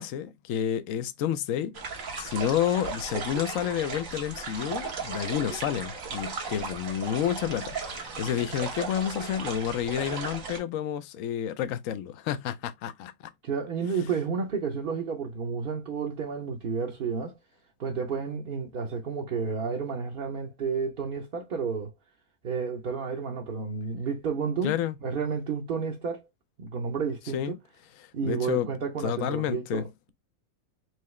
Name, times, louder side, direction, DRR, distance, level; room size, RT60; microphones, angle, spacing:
voice 1, 0.0-13.3 24.6-25.0 27.3-27.5 28.0-28.7 29.0-29.9, left 10 dB, 75° left, 1.0 m, -30 dB
sound 1, 1.7-10.6, right 4 dB, 75° right, 1.5 m, -36 dB
voice 2, 13.4-17.4 17.8-21.9 22.4-24.8 25.0-26.3 26.6-27.6 28.1-30.1, right 5 dB, 50° right, 0.8 m, -31 dB
4.7 x 2.8 x 3.1 m
omnidirectional pair, 1.4 m